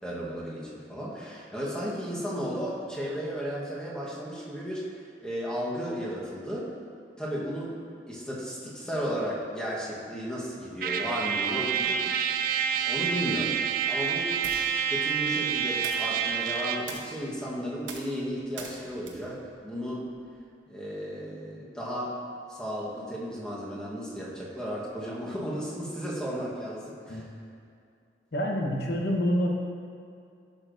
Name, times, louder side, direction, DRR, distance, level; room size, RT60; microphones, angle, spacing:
voice 1, 0.0-6.7 7.2-7.8 8.1-12.3 12.8-14.3 14.8-20.1 20.7-22.2 22.5-27.3, equal, 5° left, -6 dB, 1.1 m, -34 dB
Trumpet, 10.8-16.9, right 7 dB, 50° right, 0.4 m, -28 dB
sound 1, 14.4-20.5, right 4 dB, 90° right, 0.9 m, -46 dB
voice 2, 28.3-29.5, equal, 60° left, 0 dB, 0.9 m, -27 dB
11.0 x 6.6 x 2.6 m, 2.4 s
head